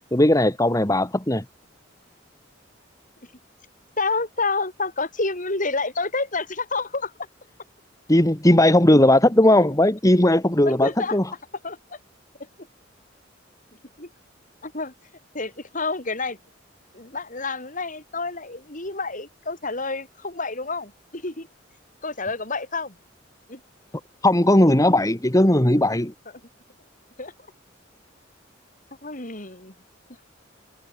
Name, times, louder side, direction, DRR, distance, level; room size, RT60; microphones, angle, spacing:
voice 1, 0.0-1.4 8.1-11.3 24.2-26.1, left 1 dB, 20° left, 2.1 m, -18 dB
voice 2, 4.0-7.1 10.6-11.2 11.6-12.0 14.0-14.1 14.6-14.9 15.3-16.4 16.9-21.5 22.0-23.0 23.5-23.6 27.2-27.3 29.0-29.7, left 3 dB, 45° left, 6.7 m, -29 dB
head